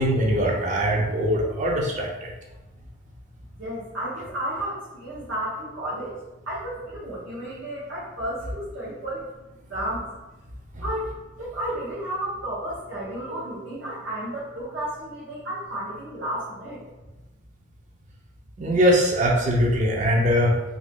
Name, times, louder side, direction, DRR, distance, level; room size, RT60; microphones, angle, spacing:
voice 1, 0.0-2.3 10.7-10.8 18.6-20.6, equal, 40° right, -1 dB, 0.4 m, -21 dB
voice 2, 3.6-6.2 6.5-9.2 9.7-10.1 10.8-11.1 11.4-16.8, right 1 dB, 85° right, -9 dB, 0.9 m, -32 dB
2.7 x 2.6 x 3.5 m, 1.1 s
head